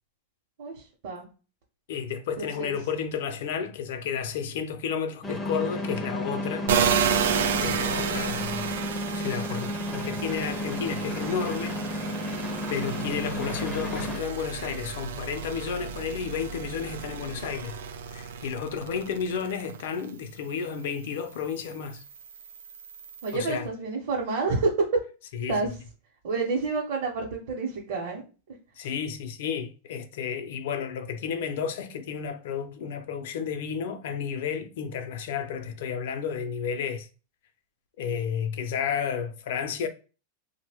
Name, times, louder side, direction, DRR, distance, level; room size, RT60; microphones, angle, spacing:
voice 1, 0.6-1.2 2.4-2.7 23.2-24.9 25.5-25.7 26.2-28.6, right 3 dB, 60° right, 0.7 m, -29 dB
voice 2, 1.9-6.7 7.6-8.7 9.1-12.1 12.7-17.8 18.1-22.0 23.3-23.7 25.3-25.6 28.8-37.1 38.0-39.9, left 7 dB, 65° left, 0.5 m, -32 dB
sound 1, 5.2-14.2, left 1 dB, 10° left, 0.4 m, -32 dB
sound 2, 6.7-20.0 20.5-23.3, right 7 dB, 85° right, 0.4 m, -32 dB
2.8 x 2.1 x 3.4 m
supercardioid pair, 160°, 0 cm